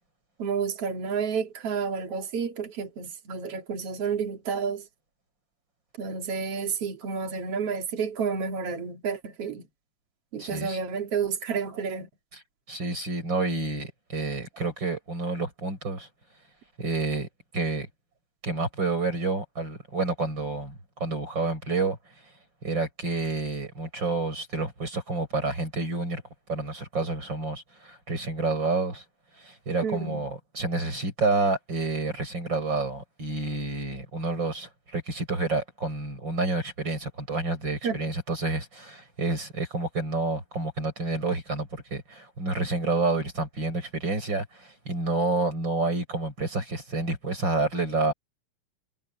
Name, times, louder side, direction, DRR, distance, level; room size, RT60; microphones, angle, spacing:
voice 1, 0.4-4.9 6.0-9.7 10.3-12.1 29.8-30.3 37.8-38.0, right 6 dB, 55° right, 3.4 m, -30 dB
voice 2, 10.4-10.8 12.7-16.1 16.8-17.3 17.5-17.9 18.4-22.0 22.6-26.2 26.5-29.0 29.4-48.1, right 3 dB, 35° right, 8.2 m, -29 dB
omnidirectional pair, 3.4 m